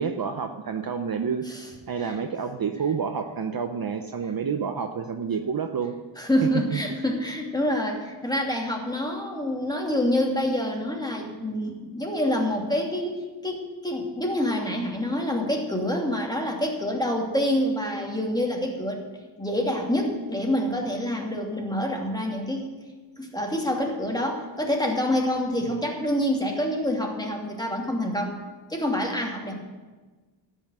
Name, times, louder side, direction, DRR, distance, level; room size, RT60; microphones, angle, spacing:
voice 1, 0.0-1.6 1.9-5.9 6.7-6.8 25.7-25.8, right 6 dB, 45° right, 7 dB, 0.8 m, -29 dB
voice 2, 6.2-19.0 19.4-22.7 23.2-28.4 28.7-29.5, left 1 dB, 10° left, 0 dB, 2.6 m, -27 dB
13.0 x 5.6 x 9.2 m, 1.3 s
cardioid pair, 75°, 48 cm